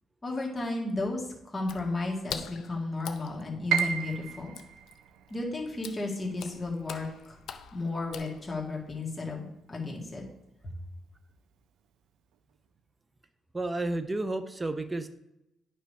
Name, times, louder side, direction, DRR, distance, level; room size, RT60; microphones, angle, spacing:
voice 1, 0.2-4.6 5.3-7.4 7.7-10.3 10.6-10.7, left 2 dB, 25° left, -2 dB, 1.9 m, -33 dB
Water / Splash splatter, 1.6-8.8, left 7 dB, 75° left, 0.5 m, -44 dB
Piano, 3.7-9.6 10.0-11.1 11.5-11.6 12.3-12.7, right 9 dB, 90° right, 0.4 m, -36 dB
voice 2, 13.5-15.1, right 2 dB, 20° right, 10 dB, 0.6 m, -31 dB
9.1 x 3.4 x 5.4 m, 0.89 s
cardioid pair, 90°, 0 cm